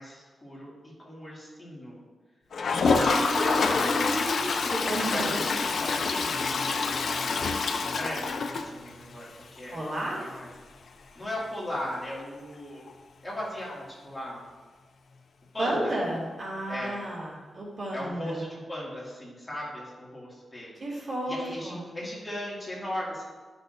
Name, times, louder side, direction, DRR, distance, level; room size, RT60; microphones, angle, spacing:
voice 1, 0.0-2.0 2.7-3.9 5.0-7.3 7.9-9.8 10.2-10.5 11.1-12.8 13.2-14.4 15.5-16.0 16.7-17.0 17.9-20.8 21.3-23.2, left 1 dB, 20° left, -6 dB, 2.2 m, -37 dB
Toilet flush, 2.5-9.2 9.6-9.7 9.9-10.0 10.2-10.3 12.9-13.0 14.3-14.4, left 4 dB, 65° left, 0.6 m, -27 dB
voice 2, 2.5-5.4 9.7-10.3 15.6-18.4 20.8-21.9, right 1 dB, 45° right, -5 dB, 2.2 m, -33 dB
11.0 x 6.1 x 2.6 m, 1.4 s
wide cardioid pair, 155°, 0 cm